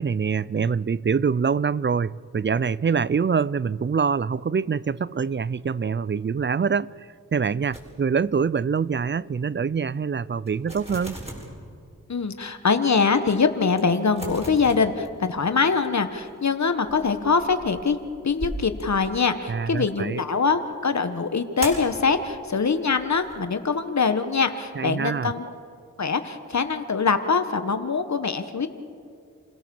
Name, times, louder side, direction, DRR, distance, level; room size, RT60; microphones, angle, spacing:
voice 1, 0.0-6.9 7.3-11.2 19.5-20.2 24.8-25.3, right 6 dB, 35° right, 0.5 m, -25 dB
sound 1, 7.7-8.5 8.8-9.0 9.5-9.6 10.0-10.1 10.4-11.7 12.2-12.3 12.9-13.0 13.2-13.3 13.7-15.6 15.9-19.6 21.6-22.0 22.6-23.4, right 1 dB, 20° right, 6.7 m, -38 dB
voice 2, 12.1-18.0 18.2-25.5 26.0-28.7, left 5 dB, 60° left, 1.4 m, -23 dB
29.0 x 17.0 x 7.1 m
cardioid pair, 50°, 32 cm